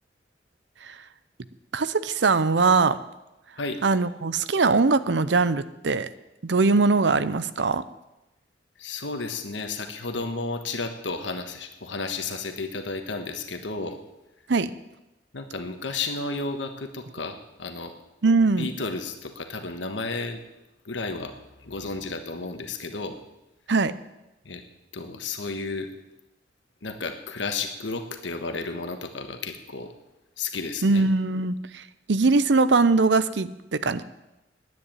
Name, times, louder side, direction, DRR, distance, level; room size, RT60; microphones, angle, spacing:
voice 1, 1.7-3.0 3.8-6.1 6.4-7.8 14.5-14.7 18.2-18.7 23.7-23.9 30.8-34.0, right 3 dB, 70° right, 14 dB, 0.7 m, -21 dB
voice 2, 8.8-14.0 15.3-17.9 18.6-20.4 20.8-23.2 24.4-24.6 24.9-25.9 26.8-29.9 30.4-31.0, left 3 dB, 80° left, 7 dB, 1.3 m, -32 dB
11.0 x 9.4 x 9.0 m, 0.97 s
head